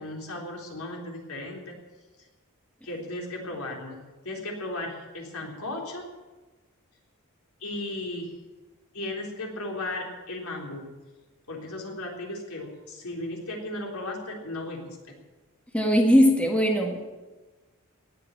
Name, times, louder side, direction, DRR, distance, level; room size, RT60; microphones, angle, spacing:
voice 1, 0.0-1.8 2.8-4.0 4.2-6.0 7.6-8.3 8.9-10.9 11.5-15.2, left 2 dB, 75° left, 0 dB, 3.7 m, -35 dB
voice 2, 15.7-17.0, equal, 5° left, 2 dB, 1.7 m, -20 dB
18.5 x 8.2 x 8.5 m, 1.2 s
head